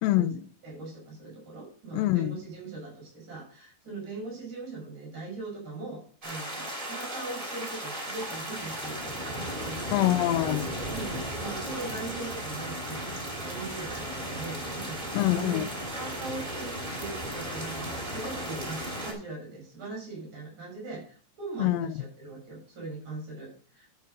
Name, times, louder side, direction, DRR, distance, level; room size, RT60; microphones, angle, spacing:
voice 1, 0.0-0.4 1.9-2.4 9.9-10.7 15.1-15.7 21.6-21.9, left 15 dB, 85° left, 13 dB, 2.3 m, -25 dB
voice 2, 0.6-10.0 10.9-13.1 13.4-15.6 15.9-23.9, right 3 dB, 35° right, -3 dB, 5.9 m, -40 dB
sound 1, 6.2-19.1, right 1 dB, 15° right, 2.6 m, -35 dB
11.5 x 5.2 x 5.2 m, 0.42 s
omnidirectional pair, 4.1 m